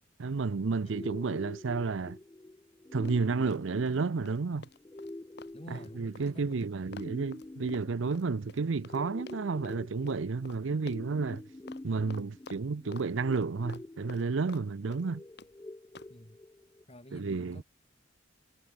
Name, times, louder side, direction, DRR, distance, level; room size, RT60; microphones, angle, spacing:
voice 1, 0.2-2.2 2.9-4.7 5.7-11.4 11.8-15.2 17.1-17.6, right 4 dB, 70° right, 0.6 m, -31 dB
sound 1, 0.9-16.8, left 2 dB, 15° left, 0.4 m, -47 dB
Run, 3.0-4.0 4.2-9.0 9.3-9.8 10.1-10.2 10.4-10.6 10.9-11.4 11.7-11.8 12.1-13.1 13.3-14.7 14.9-15.5 15.9-16.1, left 3 dB, 55° left, 2.1 m, -50 dB
voice 2, 5.5-6.7 16.1-16.4 16.9-17.6, equal, 30° left, 5.2 m, -50 dB
head